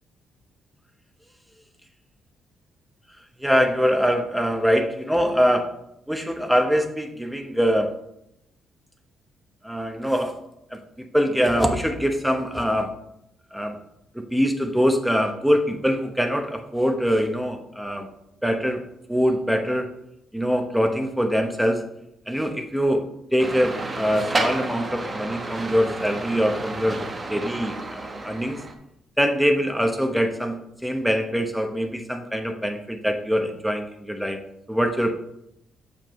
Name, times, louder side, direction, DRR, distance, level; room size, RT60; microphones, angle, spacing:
voice 1, 3.4-5.7 6.1-7.9 9.6-10.3 10.7-12.9 13.5-13.8 14.3-18.1 18.4-18.8 19.1-19.9 20.3-21.8 22.3-28.6 29.2-34.4 34.7-35.1, equal, ahead, 5 dB, 0.9 m, -23 dB
sound 1, 23.4-28.7, right 2 dB, 30° right, 0.9 m, -31 dB
6.9 x 5.7 x 3.1 m, 0.80 s
cardioid pair, 90°, 0 cm